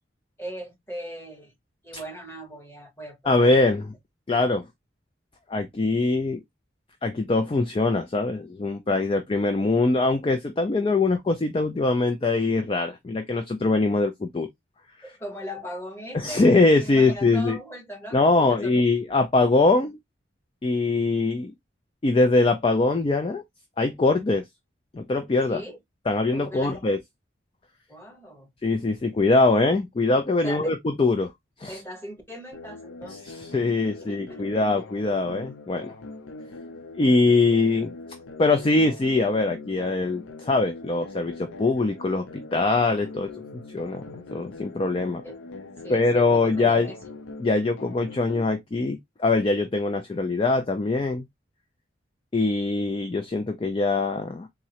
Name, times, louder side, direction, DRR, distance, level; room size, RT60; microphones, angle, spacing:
voice 1, 0.4-1.5 1.8-3.6 15.0-16.5 16.8-18.7 25.5-25.8 26.3-26.8 27.9-28.5 30.4-30.7 31.7-33.2 34.0-34.5 45.2-45.4 45.8-47.0, equal, 10° left, 1.1 m, -39 dB
voice 2, 3.3-3.9 4.3-4.6 5.5-6.4 7.0-14.5 16.1-17.6 18.1-20.0 20.6-21.5 22.0-23.4 23.8-24.5 24.9-25.6 26.1-27.0 28.6-31.3 31.6-31.8 33.3-35.9 37.0-37.9 38.4-45.2 45.9-46.9 47.4-51.2 52.3-54.5, left 3 dB, 25° left, 0.3 m, -23 dB
sound 1, 32.5-48.5, left 3 dB, 85° left, 0.5 m, -42 dB
3.7 x 2.0 x 2.8 m
head